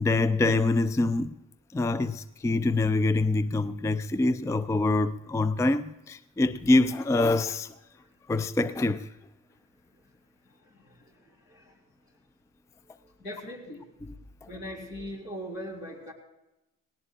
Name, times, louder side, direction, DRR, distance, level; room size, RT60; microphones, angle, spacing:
voice 1, 0.0-1.3 1.7-7.7 8.3-9.1, left 2 dB, 10° left, 0.4 m, -25 dB
voice 2, 10.5-11.8 12.8-13.8 14.4-16.1, equal, 70° left, 3.7 m, -41 dB
19.0 x 17.5 x 2.5 m
hypercardioid pair, 45°, 37 cm